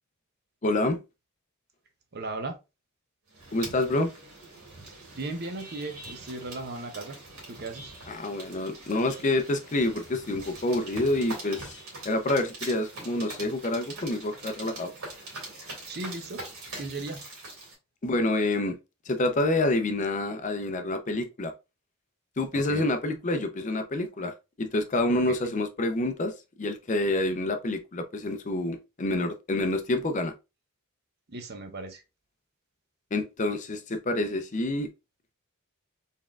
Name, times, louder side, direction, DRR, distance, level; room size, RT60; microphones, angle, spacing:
voice 1, 0.6-1.0 3.5-4.1 8.1-11.8 12.0-14.9 18.0-18.8 19.1-21.5 22.4-26.3 26.6-30.3 33.1-34.9, left 2 dB, 35° left, 0.5 m, -27 dB
voice 2, 2.1-2.6 4.8-7.2 7.5-7.9 15.9-16.4 16.8-17.2 22.5-22.9 25.1-25.3 31.3-32.0, right 2 dB, 45° right, 0.7 m, -37 dB
sound 1, 3.3-17.7, right 2 dB, 80° right, 2.2 m, -43 dB
4.2 x 3.5 x 2.3 m
head